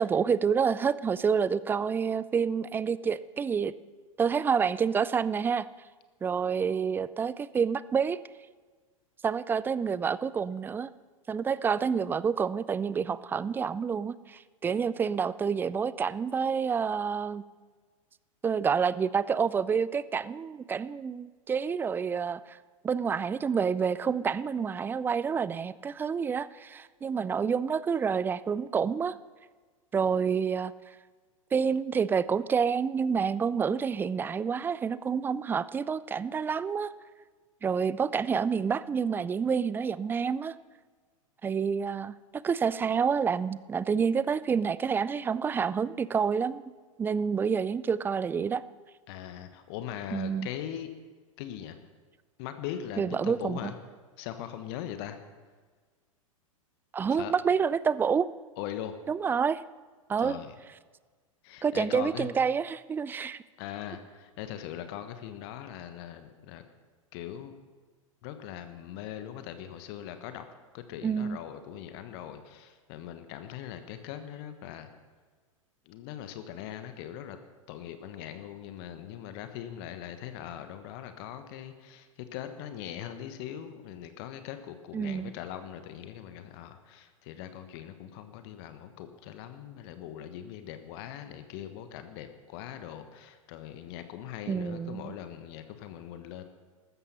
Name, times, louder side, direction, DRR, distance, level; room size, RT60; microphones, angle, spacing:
voice 1, 0.0-3.7 4.2-5.7 6.2-8.2 9.2-10.9 11.3-17.4 18.4-22.6 22.8-29.2 29.9-30.7 31.5-36.9 37.6-40.6 41.4-46.6 47.0-48.6 50.1-50.5 53.0-53.7 56.9-58.3 59.1-59.6 60.1-60.4 61.6-63.4 71.0-71.4 84.9-85.3 94.5-95.1, right 6 dB, 10° right, 18 dB, 0.4 m, -28 dB
voice 2, 49.1-50.9 51.4-51.8 52.4-53.7 54.2-55.2 57.1-57.3 58.6-58.9 60.2-60.6 61.4-62.3 63.6-66.6 67.1-67.5 68.2-70.4 70.7-74.9 75.8-77.4 77.7-96.4, left 10 dB, 45° left, 9 dB, 1.3 m, -41 dB
14.5 x 13.0 x 5.7 m, 1.5 s
figure-of-eight pair, 100°, 18 cm